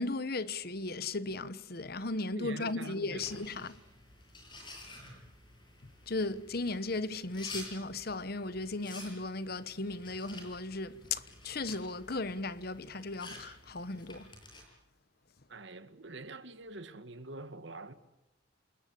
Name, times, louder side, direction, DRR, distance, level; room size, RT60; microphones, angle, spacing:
voice 1, 0.0-3.7 6.1-14.3, left 3 dB, 50° left, 1.1 m, -36 dB
voice 2, 2.3-3.4 15.5-17.9, right 2 dB, 65° right, 2.0 m, -45 dB
sound 1, 3.1-14.6, left 2 dB, 25° left, 8.0 m, -51 dB
28.5 x 21.0 x 8.6 m
head